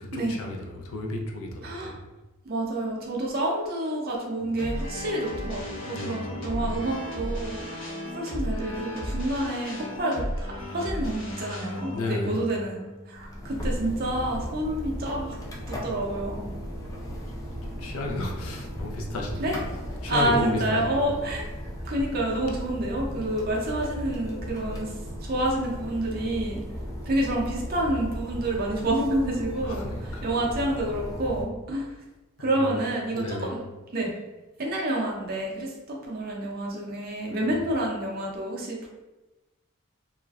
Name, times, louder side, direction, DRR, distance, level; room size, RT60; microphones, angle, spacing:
voice 1, 0.0-2.1 5.8-6.8 11.9-12.4 16.8-17.2 17.6-19.6 20.0-21.2 29.6-30.3 32.4-32.8 33.1-33.5 37.5-37.6, left 2 dB, 80° left, 0 dB, 0.5 m, -33 dB
voice 2, 1.6-2.0 2.5-15.4 15.7-16.5 19.4-19.5 19.9-21.5 21.9-24.9 25.2-26.6 27.1-31.9 32.4-33.6 33.9-34.1 34.6-38.9, right 1 dB, 45° right, -2 dB, 0.5 m, -29 dB
sound 1, 4.6-13.7, left 1 dB, 60° left, 0.8 m, -35 dB
sound 2, 13.1-31.4, equal, 15° left, 0.3 m, -36 dB
3.0 x 2.4 x 2.3 m, 1.0 s
head